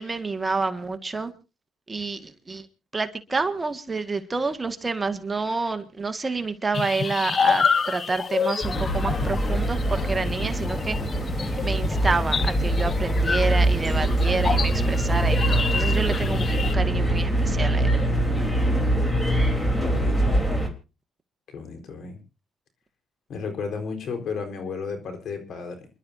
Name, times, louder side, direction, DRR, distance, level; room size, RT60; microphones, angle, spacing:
voice 1, 0.0-1.3 1.9-2.7 2.9-11.0 11.6-17.9, right 3 dB, 25° right, 8 dB, 1.7 m, -28 dB
sound 1, 6.7-16.7, left 6 dB, 45° left, 0.7 m, -28 dB
sound 2, 8.6-20.7, right 1 dB, 15° left, 3.5 m, -23 dB
voice 2, 19.8-20.4 21.5-22.2 23.3-25.9, left 5 dB, 70° left, 6 dB, 4.2 m, -33 dB
28.5 x 11.5 x 2.7 m, 0.31 s
cardioid pair, 90°, 0 cm